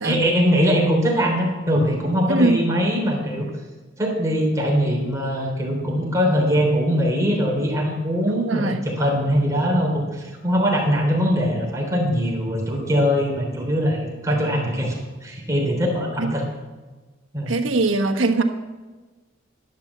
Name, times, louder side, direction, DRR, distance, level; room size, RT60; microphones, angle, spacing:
voice 1, 0.0-3.5 4.0-16.4 17.3-17.6, equal, 15° right, -2 dB, 3.5 m, -22 dB
voice 2, 2.3-2.6 8.3-8.8 16.2-16.3 17.5-18.4, right 2 dB, 85° right, 6 dB, 1.3 m, -21 dB
11.5 x 10.5 x 7.2 m, 1.3 s
head